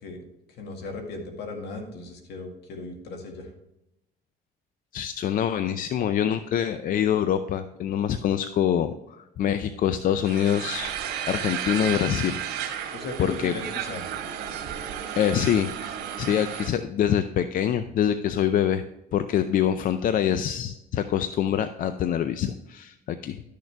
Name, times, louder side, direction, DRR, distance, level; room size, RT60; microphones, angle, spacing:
voice 1, 0.6-3.5 12.9-14.1, left 3 dB, 75° left, 3 dB, 2.0 m, -37 dB
voice 2, 4.9-10.9 11.3-13.5 15.2-18.8 19.1-23.4, left 9 dB, 55° left, 10 dB, 0.5 m, -25 dB
sound 1, 10.2-16.7, right 9 dB, 85° right, 1.7 m, -33 dB
12.0 x 6.5 x 3.4 m, 0.87 s
cardioid pair, 110°, 17 cm